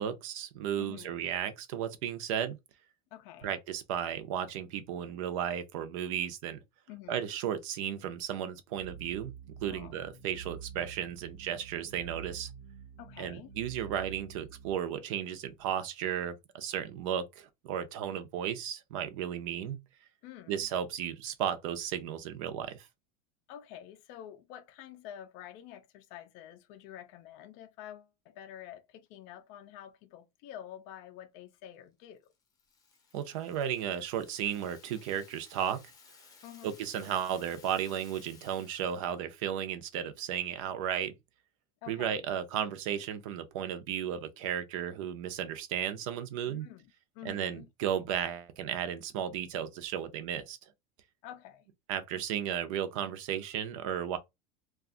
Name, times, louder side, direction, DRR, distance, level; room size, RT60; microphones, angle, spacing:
voice 1, 0.0-2.6 3.4-6.6 7.1-9.3 9.6-12.5 13.2-19.8 20.5-22.9 33.1-35.8 36.6-41.1 41.9-46.7 47.2-50.6 51.9-54.2, right 9 dB, 60° right, 0.6 m, -34 dB
voice 2, 0.8-1.1 3.1-3.5 6.9-7.3 9.6-10.0 13.0-13.5 20.2-20.7 23.5-32.3 36.4-36.7 41.8-42.2 46.5-47.7 51.2-51.7, left 11 dB, 40° left, 0.4 m, -48 dB
sound 1, 8.7-14.7, right 7 dB, 85° right, 1.1 m, -47 dB
Rattle (instrument), 32.2-39.2, left 5 dB, 20° left, 0.7 m, -58 dB
2.5 x 2.3 x 3.7 m
supercardioid pair, 170°, 19 cm